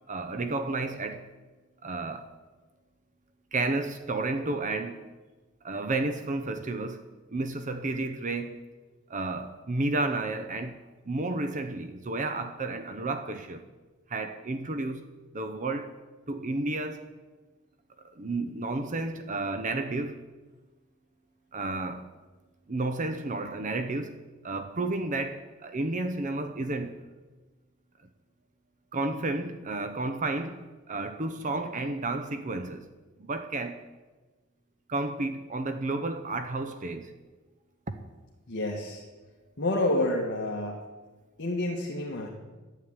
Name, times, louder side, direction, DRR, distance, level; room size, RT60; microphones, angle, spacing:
voice 1, 0.1-1.3 1.8-2.3 3.5-5.0 5.6-7.0 7.3-8.6 9.1-10.8 11.1-13.6 14.1-15.1 15.3-16.0 16.3-17.1 18.0-20.2 21.5-22.1 22.7-27.0 28.9-32.9 33.2-33.8 34.9-37.1 37.9-38.0, right 2 dB, 40° right, 0.7 m, -31 dB
voice 2, 38.5-39.0 39.6-40.8 41.4-42.3, left 1 dB, 55° left, 1.6 m, -29 dB
11.5 x 8.7 x 9.6 m
head